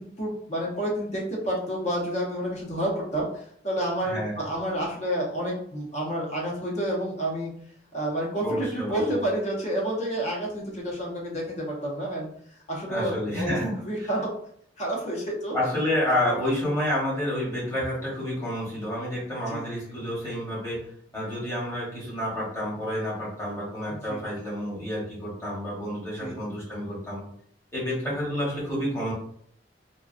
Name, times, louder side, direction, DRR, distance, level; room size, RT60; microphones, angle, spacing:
voice 1, 0.0-7.5 7.9-12.3 12.7-13.5 13.8-14.3 14.8-15.6 19.5-19.9 23.9-24.2 26.2-26.4, right 1 dB, 40° left, -3 dB, 0.8 m, -29 dB
voice 2, 4.0-4.4 8.4-9.2 12.9-14.1 15.5-27.2 27.7-29.1, left 1 dB, 15° left, -7 dB, 1.1 m, -29 dB
2.4 x 2.3 x 2.4 m, 0.64 s
head